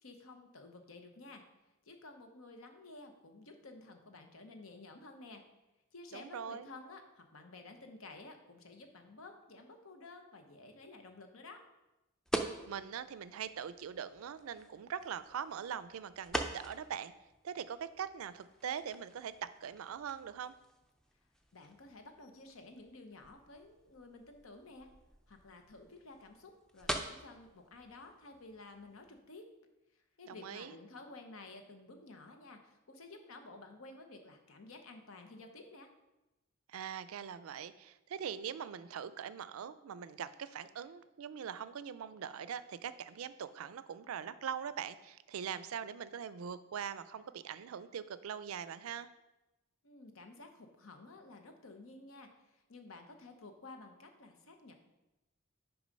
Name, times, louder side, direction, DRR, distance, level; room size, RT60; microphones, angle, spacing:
voice 1, 0.0-1.4 1.8-5.5 5.9-11.6 21.5-24.9 25.3-29.5 30.2-35.9 49.8-54.7, left 2 dB, 80° left, 5 dB, 0.9 m, -53 dB
voice 2, 6.1-6.7 12.7-17.1 17.4-20.5 30.3-30.7 36.7-49.1, right 8 dB, 90° right, 15 dB, 0.4 m, -42 dB
sound 1, 12.3-29.2, right 1 dB, 5° left, 0.4 m, -45 dB
6.2 x 4.8 x 5.2 m, 1.0 s
head